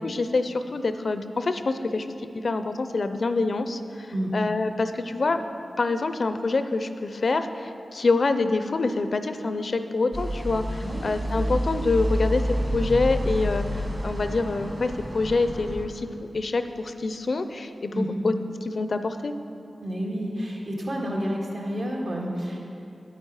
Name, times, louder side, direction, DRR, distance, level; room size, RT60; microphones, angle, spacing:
voice 1, 0.0-2.1 2.3-5.4 5.8-18.3 18.6-19.3, left 3 dB, 60° left, 9 dB, 0.5 m, -26 dB
sound 1, 10.1-15.9, equal, 30° right, 1.5 m, -29 dB
voice 2, 10.8-11.1 17.9-18.2 19.8-22.6, equal, 65° right, -2 dB, 1.9 m, -30 dB
9.1 x 8.9 x 4.8 m, 2.7 s
cardioid pair, 65°, 0 cm